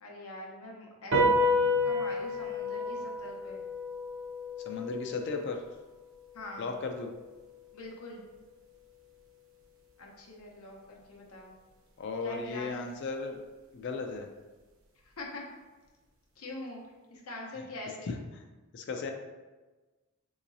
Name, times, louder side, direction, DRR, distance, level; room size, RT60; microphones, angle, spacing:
voice 1, 0.0-1.5 1.8-3.6 6.3-6.7 7.7-8.2 10.0-11.6 12.2-12.9 15.0-15.4 16.4-16.8 17.1-18.2, left 2 dB, 85° left, -1 dB, 0.8 m, -43 dB
sound 1, 1.1-7.8, left 1 dB, 65° right, 0.6 m, -31 dB
voice 2, 4.7-5.6 6.6-7.1 12.0-13.4 13.7-14.3 17.6-17.7 18.0-18.1 18.7-19.1, left 4 dB, 55° left, 4 dB, 0.4 m, -35 dB
3.8 x 2.9 x 2.6 m, 1.2 s
head